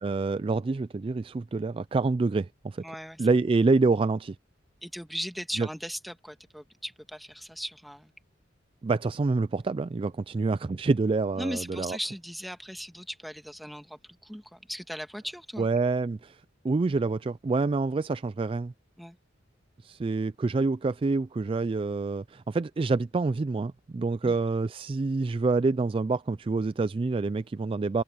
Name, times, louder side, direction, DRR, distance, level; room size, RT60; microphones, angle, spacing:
voice 1, 0.0-2.8 3.2-4.4 5.6-5.7 8.8-12.0 15.6-16.4 16.6-18.7 19.8-28.0, right 3 dB, 30° right, 0.3 m, -27 dB
voice 2, 2.8-3.3 4.8-8.1 11.4-15.7 19.0-19.2 24.2-24.3, equal, ahead, 1.7 m, -38 dB
head